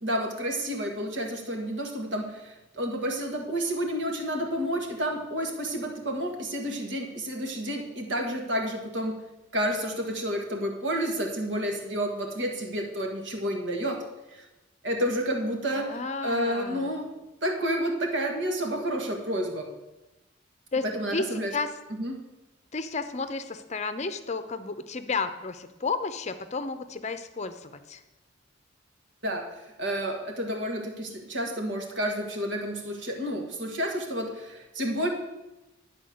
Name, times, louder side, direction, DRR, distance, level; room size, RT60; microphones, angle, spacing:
voice 1, 0.0-9.2 9.5-14.0 14.3-14.4 14.8-17.1 17.4-19.7 20.8-21.5 22.0-22.2 29.2-29.4 29.8-35.1, equal, 65° right, 2 dB, 1.7 m, -30 dB
voice 2, 15.7-16.9 20.7-20.9 21.1-21.7 22.7-28.0, left 4 dB, 35° left, 10 dB, 0.7 m, -32 dB
11.0 x 4.3 x 7.7 m, 1.0 s
head